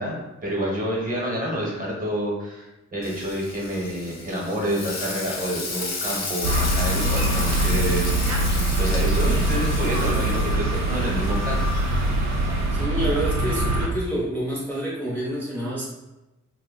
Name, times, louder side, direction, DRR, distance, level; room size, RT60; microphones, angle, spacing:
voice 1, 0.0-2.7 2.9-11.6, right 1 dB, 30° right, -3 dB, 1.1 m, -28 dB
Frying (food), 3.0-12.7, left 3 dB, 60° left, 0.7 m, -34 dB
sound 1, 6.4-13.9, right 1 dB, 70° right, 0.6 m, -23 dB
voice 2, 12.7-15.9, right 1 dB, 5° left, -8 dB, 0.7 m, -28 dB
2.7 x 2.2 x 3.8 m, 1.0 s
wide cardioid pair, 110°, 29 cm